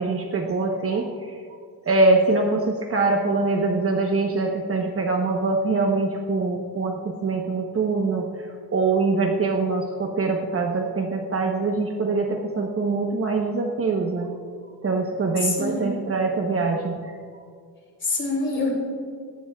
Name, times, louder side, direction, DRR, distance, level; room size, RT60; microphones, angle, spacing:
voice 1, 0.0-1.4 1.9-8.3 8.7-14.3 14.8-17.0, right 3 dB, 35° right, 2 dB, 1.0 m, -23 dB
voice 2, 15.4-15.9 18.0-18.7, left 3 dB, 30° left, -1 dB, 3.2 m, -25 dB
18.0 x 17.0 x 2.4 m, 2.1 s
cardioid pair, 150°, 39 cm